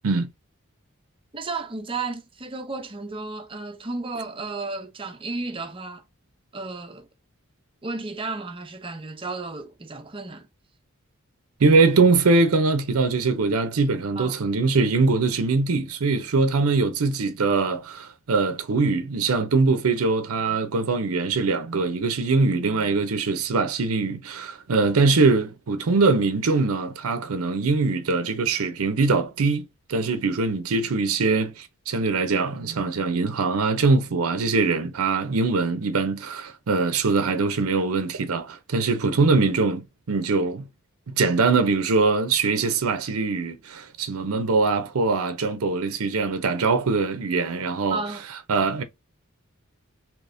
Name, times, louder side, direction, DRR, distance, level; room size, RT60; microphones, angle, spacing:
voice 1, 1.3-6.0 6.5-7.1 7.8-10.5 14.2-14.4 47.9-48.2, right 3 dB, 25° right, 0.6 m, -33 dB
voice 2, 11.6-40.7 41.1-48.0 48.5-48.8, right 3 dB, 90° right, 0.6 m, -22 dB
3.4 x 3.0 x 2.5 m
head